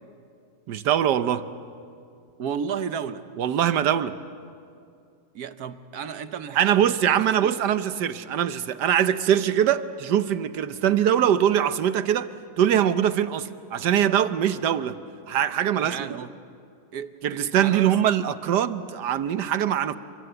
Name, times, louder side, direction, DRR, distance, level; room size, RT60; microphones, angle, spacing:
voice 1, 0.7-1.4 3.4-4.2 6.6-12.3 12.6-15.0 15.3-16.1 17.2-20.0, right 10 dB, 80° right, 12 dB, 1.5 m, -22 dB
voice 2, 2.4-3.3 5.3-6.8 7.4-7.5 15.8-16.3 16.9-17.9, right 7 dB, 65° right, 11 dB, 1.4 m, -33 dB
30.0 x 24.0 x 7.9 m, 2.5 s
omnidirectional pair, 1.8 m